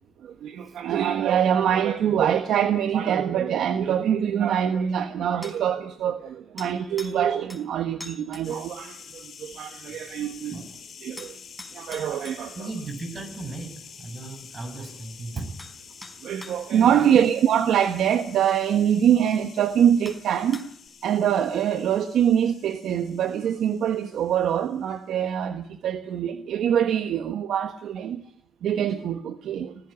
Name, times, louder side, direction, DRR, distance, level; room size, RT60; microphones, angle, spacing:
voice 1, 0.2-10.5 11.0-11.4 11.7-12.7 16.2-20.7 21.0-28.2 28.6-29.7, right 9 dB, 75° right, 1.3 m, -24 dB
sound 1, 5.4-5.6 6.6-7.2 7.5-7.6 8.0-8.5 11.2-12.4 15.0-15.1 15.6-15.7 16.0-16.6 18.2-18.3 19.3-19.4 20.0-20.2 20.5-20.9, left 1 dB, 5° left, 4.2 m, -42 dB
sound 2, 8.4-24.7, left 6 dB, 50° left, 4.4 m, -47 dB
voice 2, 12.5-15.5 16.9-17.1, right 2 dB, 40° right, 6.7 m, -36 dB
20.0 x 15.5 x 8.6 m
cardioid pair, 90°, 0 cm